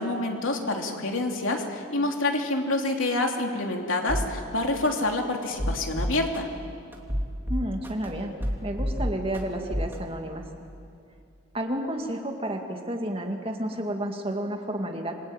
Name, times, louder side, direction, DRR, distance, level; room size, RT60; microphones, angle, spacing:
voice 1, 0.0-6.5, left 2 dB, 70° left, 2 dB, 3.1 m, -27 dB
sound 1, 4.1-4.3 4.8-4.9 5.4-6.4 6.9-8.1 8.4-9.4 9.7-9.9, equal, 10° right, 2.4 m, -28 dB
voice 2, 7.5-8.3 8.6-10.5 11.5-15.3, right 1 dB, 25° right, 3 dB, 2.2 m, -31 dB
27.5 x 22.5 x 9.0 m, 2.4 s
head